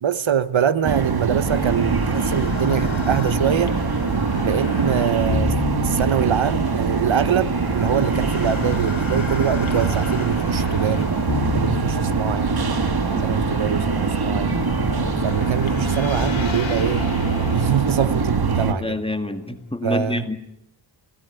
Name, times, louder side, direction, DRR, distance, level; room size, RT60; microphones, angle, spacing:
voice 1, 0.0-3.8 4.4-5.5 5.8-11.1 11.5-12.5 13.2-14.5 15.2-17.0 17.5-19.0 19.8-20.2, right 8 dB, 75° right, 1.0 m, -24 dB
sound 1, 0.8-18.7, right 5 dB, 50° right, 1.7 m, -23 dB
sound 2, 1.4-19.3, left 5 dB, 75° left, 2.3 m, -32 dB
voice 2, 18.6-20.4, left 2 dB, 10° left, 2.0 m, -28 dB
29.5 x 17.0 x 9.4 m
wide cardioid pair, 120°, 47 cm